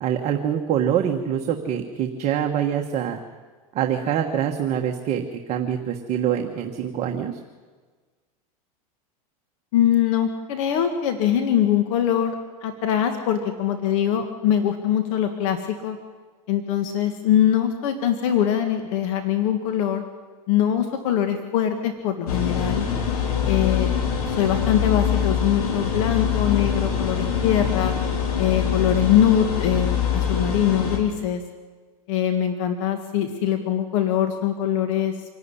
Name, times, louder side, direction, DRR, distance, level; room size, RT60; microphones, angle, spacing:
voice 1, 0.0-3.2 3.7-5.2 5.5-7.4, right 9 dB, 35° right, 3 dB, 1.4 m, -25 dB
voice 2, 9.7-12.4 12.6-16.0 16.5-20.0 20.5-22.9 23.5-24.0 24.3-28.0 28.4-31.4 32.1-35.1, left 10 dB, 60° left, 7 dB, 1.8 m, -22 dB
sound 1, 22.3-31.0, left 7 dB, 80° left, 4.0 m, -24 dB
25.5 x 11.5 x 9.9 m, 1.4 s
supercardioid pair, 135°, 19 cm